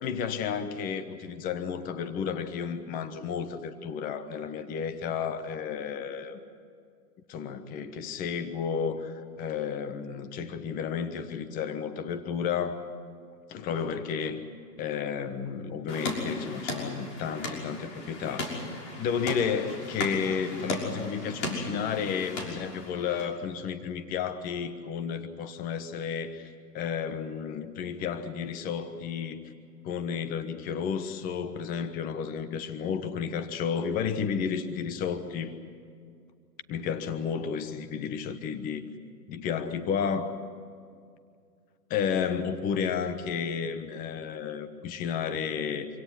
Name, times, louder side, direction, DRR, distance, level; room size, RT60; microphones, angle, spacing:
voice 1, 0.0-6.4 7.3-12.8 13.5-14.4 14.8-18.7 19.0-29.4 29.8-35.5 36.7-38.8 39.3-40.3 41.9-45.9, left 7 dB, 15° left, 10 dB, 1.2 m, -32 dB
sound 1, 15.9-23.3, left 2 dB, 45° left, 6.2 m, -36 dB
26.0 x 17.5 x 9.9 m, 2.2 s
hypercardioid pair, 140°, 49 cm